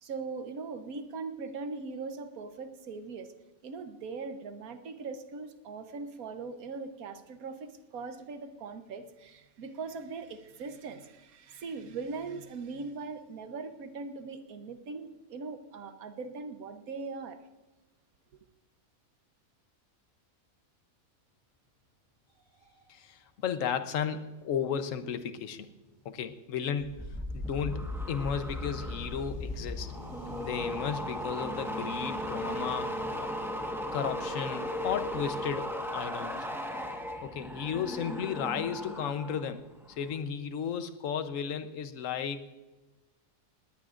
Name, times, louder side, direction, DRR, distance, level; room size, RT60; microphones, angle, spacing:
voice 1, 0.0-3.3 3.6-17.4, right 4 dB, 75° right, 8 dB, 1.4 m, -40 dB
sound 1, 21.7-21.8 22.2-33.2, left 1 dB, 30° left, 2.5 m, -52 dB
voice 2, 22.9-25.7 26.0-27.1 27.3-29.9 30.4-32.9 33.2-33.3 33.9-36.6 37.2-39.6 40.0-42.5, left 7 dB, 65° left, 10 dB, 1.2 m, -34 dB
sound 2, 26.8-39.5 39.8-40.2, left 1 dB, ahead, 1.2 m, -36 dB
20.0 x 18.5 x 2.5 m, 1.2 s
omnidirectional pair, 1.5 m